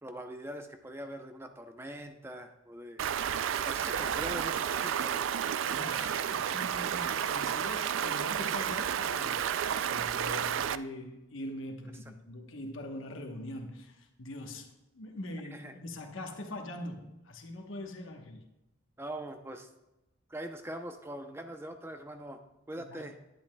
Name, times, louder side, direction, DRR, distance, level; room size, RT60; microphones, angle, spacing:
voice 1, 0.0-3.0 3.6-5.1 15.5-15.7 19.0-19.7 20.3-22.4 22.7-23.2, right 1 dB, 10° right, 0.6 m, -42 dB
Stream, 3.0-10.8, right 8 dB, 65° right, 0.3 m, -31 dB
voice 2, 5.6-9.6 9.8-18.4 22.7-23.1, left 1 dB, 70° left, 1.1 m, -42 dB
11.0 x 10.5 x 2.2 m
head